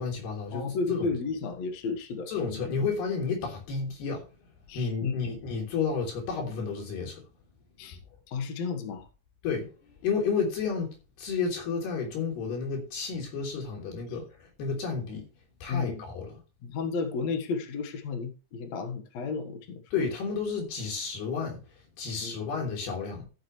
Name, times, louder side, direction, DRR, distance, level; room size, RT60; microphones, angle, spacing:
voice 1, 0.0-1.1 2.3-4.3 4.7-7.2 7.8-8.0 9.4-15.3 15.6-16.4 19.9-23.3, left 5 dB, 85° left, 5.4 m, -31 dB
voice 2, 0.5-2.6 4.7-5.1 7.8-8.0 8.3-9.1 15.7-16.0 16.6-19.8 22.2-22.4, left 4 dB, 55° left, 2.3 m, -33 dB
14.5 x 7.3 x 3.2 m
omnidirectional pair, 4.4 m